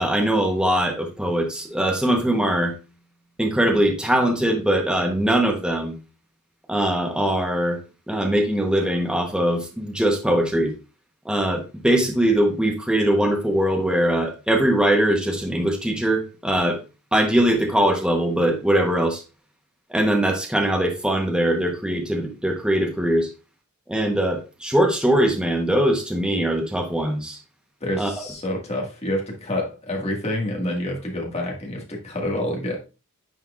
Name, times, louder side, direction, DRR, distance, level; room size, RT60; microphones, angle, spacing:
voice 1, 0.0-2.7 3.4-6.0 6.7-7.8 8.1-10.7 11.2-16.8 17.1-19.2 19.9-23.3 23.9-27.4 28.0-28.1, right 1 dB, 5° right, 1 dB, 0.9 m, -21 dB
voice 2, 27.8-32.7, left 1 dB, 30° left, 0 dB, 1.7 m, -27 dB
9.4 x 4.4 x 2.4 m, 0.30 s
head